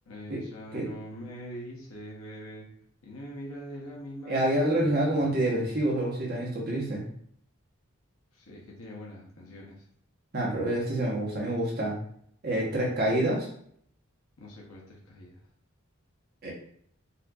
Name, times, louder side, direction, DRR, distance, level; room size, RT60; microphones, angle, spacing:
voice 1, 0.1-2.7 3.0-5.7 8.3-9.9 14.4-15.4, equal, 85° left, -2 dB, 0.7 m, -43 dB
voice 2, 4.3-7.0 10.3-12.0 12.4-13.5 16.4-16.5, right 1 dB, 45° right, -3 dB, 1.0 m, -27 dB
4.2 x 2.5 x 2.3 m, 0.64 s
head